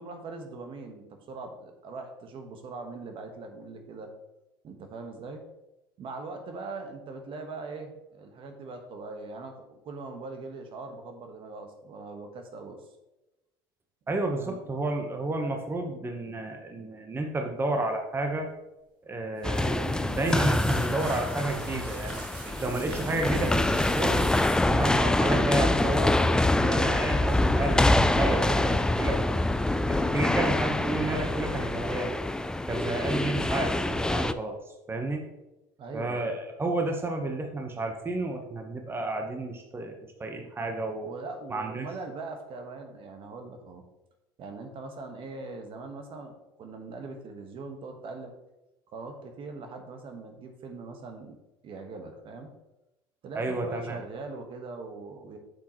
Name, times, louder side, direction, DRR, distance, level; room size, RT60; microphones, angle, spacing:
voice 1, 0.0-4.1 4.6-5.4 6.0-12.8 14.4-14.7 35.8-36.4 41.0-43.8 44.4-48.3 48.9-51.4 51.6-52.5 53.2-55.4, right 3 dB, 50° right, 4 dB, 1.4 m, -41 dB
voice 2, 14.1-18.5 19.1-22.2 22.6-24.3 24.7-29.2 29.9-32.1 32.7-34.6 34.9-35.3 35.9-39.9 40.2-41.1 41.5-41.9 53.3-54.0, right 2 dB, 20° right, 3 dB, 1.1 m, -31 dB
sound 1, 19.4-34.3, left 2 dB, 5° left, 0.4 m, -25 dB
sound 2, 19.4-25.0 25.9-26.2 26.5-26.8 28.0-28.6 28.9-29.5 29.9-30.3 30.7-30.8, right 3 dB, 80° right, 2.7 m, -45 dB
8.0 x 6.5 x 3.1 m, 0.96 s
hypercardioid pair, 80°, 12 cm